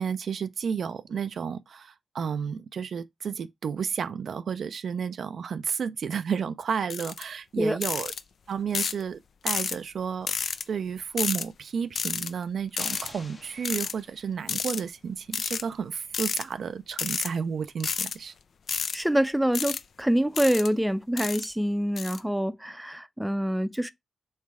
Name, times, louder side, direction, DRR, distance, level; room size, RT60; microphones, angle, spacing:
voice 1, 0.0-8.1 8.5-10.3 10.7-18.3, right 6 dB, 75° right, 0.3 m, -32 dB
sound 1, 6.9-7.2 7.8-8.2 8.7-9.0 9.5-9.8 10.3-10.6 11.2-11.4 11.9-12.3 12.8-13.1 13.6-13.9 14.5-14.8 15.3-15.6 16.1-16.4 16.9-17.3 17.8-18.1 18.7-19.0 19.5-19.8 20.3-20.7 21.2-21.5 22.0-22.2, left 6 dB, 70° left, 0.3 m, -30 dB
sound 2, 12.8-14.6, left 2 dB, 45° left, 0.8 m, -46 dB
voice 2, 18.9-23.9, equal, 5° right, 0.5 m, -26 dB
3.2 x 3.2 x 4.6 m
supercardioid pair, 45°, 0 cm